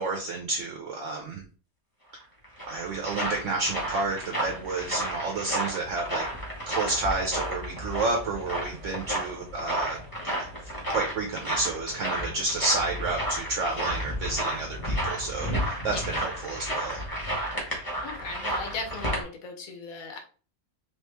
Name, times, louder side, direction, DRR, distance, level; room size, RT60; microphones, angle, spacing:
voice 1, 0.0-1.4 2.7-6.3 6.7-10.0 10.9-17.0, right 3 dB, 60° right, 1 dB, 1.0 m, -30 dB
sound 1, 2.2-19.2, right 1 dB, 15° left, 1.2 m, -32 dB
voice 2, 18.0-20.2, left 4 dB, 70° left, 4 dB, 1.3 m, -37 dB
3.2 x 3.1 x 3.3 m, 0.38 s
omnidirectional pair, 1.5 m